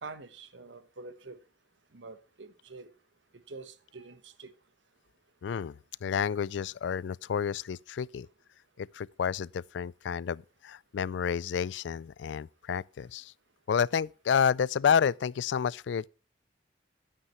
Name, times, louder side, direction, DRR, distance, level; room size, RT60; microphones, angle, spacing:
voice 1, 0.0-1.4 1.9-2.9 3.5-4.5, right 3 dB, 85° right, 1.2 m, -46 dB
voice 2, 5.4-8.3 8.8-13.3 13.7-16.1, left 7 dB, 75° left, 0.3 m, -30 dB
11.0 x 9.5 x 3.1 m
head